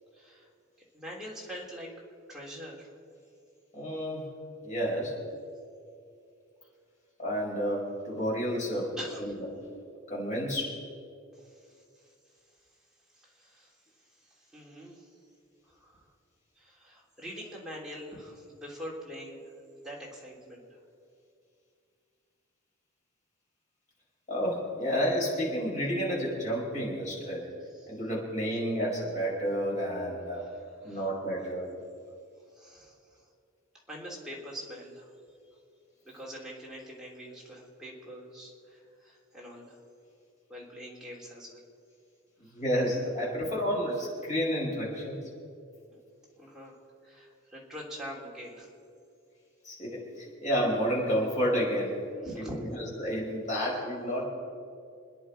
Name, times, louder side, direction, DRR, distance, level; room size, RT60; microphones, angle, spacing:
voice 1, 0.1-0.5 0.9-1.9 2.3-2.9 9.0-9.3 11.4-11.7 13.1-13.7 14.4-15.1 15.7-16.1 16.6-19.4 19.8-20.8 27.7-27.9 30.4-30.6 30.8-31.1 32.5-33.0 33.9-35.1 36.0-39.8 40.5-41.6 45.9-46.0 46.4-46.8 47.0-48.7 52.2-52.6, equal, ahead, -5 dB, 3.3 m, -44 dB
voice 2, 3.7-4.3 4.6-5.1 7.2-9.5 10.1-10.8 24.3-27.4 27.9-30.4 30.8-31.7 42.4-45.2 49.6-52.0 52.4-52.5 52.8-54.2, equal, 35° left, -5 dB, 5.4 m, -30 dB
28.5 x 10.0 x 5.1 m, 2.4 s
head